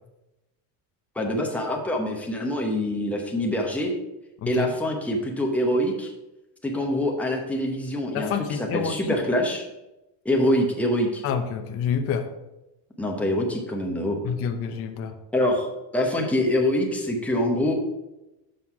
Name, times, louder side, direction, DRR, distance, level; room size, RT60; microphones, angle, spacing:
voice 1, 1.2-3.9 4.5-6.1 6.6-9.6 10.2-11.2 13.0-14.2 15.3-17.7, left 1 dB, 5° left, 0 dB, 0.9 m, -25 dB
voice 2, 4.4-4.7 8.1-9.2 11.2-12.3 14.2-15.1, left 7 dB, 30° left, 6 dB, 0.5 m, -28 dB
6.3 x 5.6 x 5.7 m, 0.96 s
cardioid pair, 160°, 49 cm